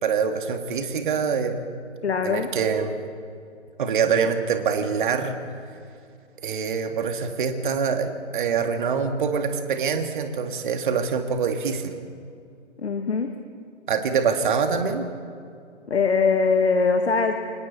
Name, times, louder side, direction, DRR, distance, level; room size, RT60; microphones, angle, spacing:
voice 1, 0.0-1.6 2.2-3.0 3.8-5.4 6.4-11.9 13.9-15.1, right 6 dB, 45° right, 6 dB, 2.2 m, -25 dB
voice 2, 2.0-2.5 12.8-13.3 15.9-17.3, left 4 dB, 65° left, 6 dB, 1.6 m, -21 dB
28.0 x 26.5 x 4.2 m, 2.4 s
figure-of-eight pair, 135°, 36 cm